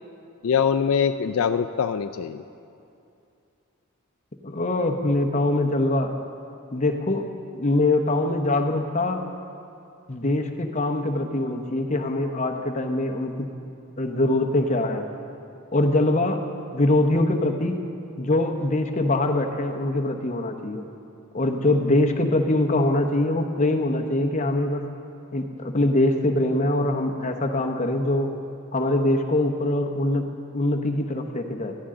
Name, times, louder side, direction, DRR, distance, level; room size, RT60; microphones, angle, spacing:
voice 1, 0.4-2.4, left 7 dB, 70° left, 9 dB, 0.4 m, -23 dB
voice 2, 4.4-6.1 6.7-7.2 7.5-9.2 10.1-13.5 14.0-15.1 15.7-16.4 16.7-17.8 18.2-20.8 21.3-24.8 25.3-28.3 28.7-30.2 30.5-31.8, left 2 dB, 35° left, 3 dB, 0.9 m, -23 dB
17.5 x 14.0 x 3.8 m, 2.6 s
head